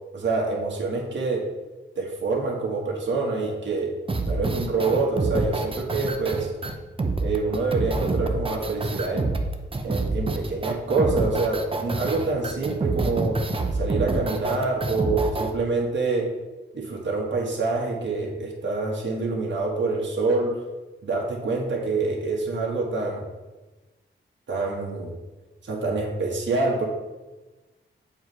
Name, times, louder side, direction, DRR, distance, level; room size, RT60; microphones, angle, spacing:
voice 1, 0.1-1.4 2.0-3.9 4.3-6.5 7.2-9.3 9.8-13.4 13.7-16.3 16.7-20.5 21.0-23.3 24.5-25.1 25.6-26.8, right 3 dB, 65° right, -2 dB, 1.5 m, -26 dB
sound 1, 4.1-15.5, right 3 dB, 25° right, 0.7 m, -27 dB
7.2 x 3.2 x 5.5 m, 1.2 s
cardioid pair, 80°, 20 cm